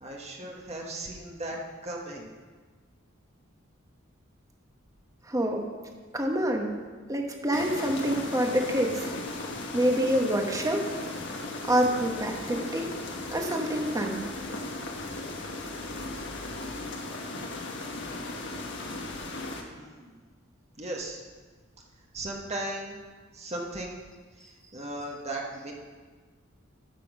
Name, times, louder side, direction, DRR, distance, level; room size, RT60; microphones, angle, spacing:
voice 1, 0.0-2.3 19.7-20.2 20.8-21.2 22.1-23.1 23.3-24.0 24.4-25.7, right 1 dB, 35° right, -1 dB, 1.4 m, -37 dB
voice 2, 5.3-5.7 6.1-6.7 7.1-9.1 9.7-10.9 11.6-12.9 13.3-14.2, equal, 15° right, 2 dB, 1.3 m, -26 dB
sound 1, 7.5-19.6, left 2 dB, 60° left, 1.4 m, -36 dB
13.0 x 6.2 x 6.1 m, 1.4 s
head